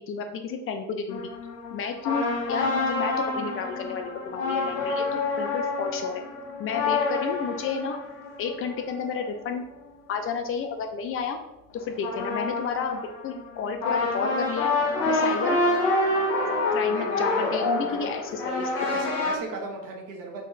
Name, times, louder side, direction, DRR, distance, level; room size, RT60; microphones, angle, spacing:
voice 1, 0.1-1.2 1.7-6.2 6.6-8.0 8.4-9.6 10.1-11.4 11.7-14.7 15.1-15.6 16.7-19.0, left 6 dB, 30° left, 5 dB, 0.4 m, -31 dB
sound 1, 1.1-9.7 11.8-19.3, left 2 dB, 75° left, 0.9 m, -27 dB
voice 2, 16.8-18.1 18.9-20.5, right 3 dB, 40° right, 1 dB, 1.0 m, -37 dB
3.9 x 2.5 x 3.6 m, 0.90 s
figure-of-eight pair, 50°, 48 cm